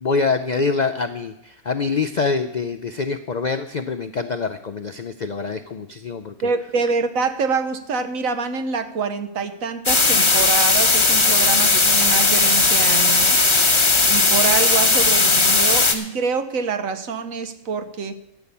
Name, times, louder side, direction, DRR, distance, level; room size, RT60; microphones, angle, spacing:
voice 1, 0.0-6.5, left 4 dB, 90° left, 8 dB, 0.4 m, -25 dB
voice 2, 6.4-13.5 14.1-18.2, right 5 dB, 65° right, 9 dB, 1.3 m, -25 dB
sound 1, 9.9-15.9, left 3 dB, 25° left, 0.9 m, -17 dB
13.0 x 7.2 x 8.4 m, 0.81 s
omnidirectional pair, 1.6 m